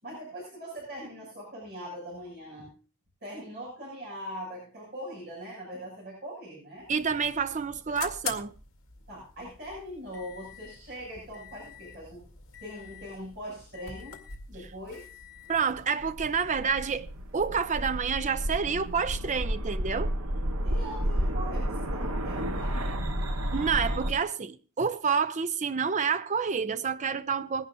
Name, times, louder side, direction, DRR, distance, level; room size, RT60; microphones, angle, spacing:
voice 1, 0.0-2.8 3.2-6.9 9.1-12.3 12.6-14.2 14.5-15.1 20.6-23.1, equal, 50° right, 6.9 m, -41 dB
sound 1, 6.8-19.2, left 7 dB, 75° left, 2.1 m, -46 dB
voice 2, 6.9-8.5 15.5-17.1 17.3-20.1 23.5-27.7, right 6 dB, 35° right, 0.6 m, -28 dB
sound 2, 15.7-24.1, equal, 80° right, 1.3 m, -31 dB
21.0 x 11.0 x 2.7 m
head